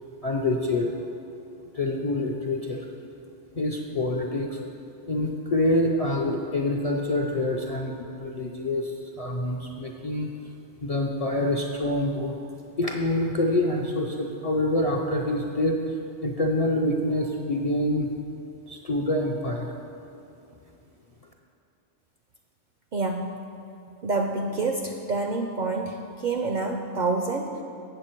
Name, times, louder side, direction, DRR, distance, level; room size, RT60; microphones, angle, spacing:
voice 1, 0.2-0.9 1.7-2.8 3.5-4.6 5.1-10.3 10.8-12.3 12.8-15.8 16.2-18.1 18.7-19.7, left 1 dB, 50° left, 0 dB, 0.4 m, -26 dB
voice 2, 22.9-23.4 24.0-27.6, right 3 dB, 60° right, 3 dB, 0.5 m, -27 dB
7.7 x 7.2 x 4.4 m, 2.8 s
omnidirectional pair, 1.2 m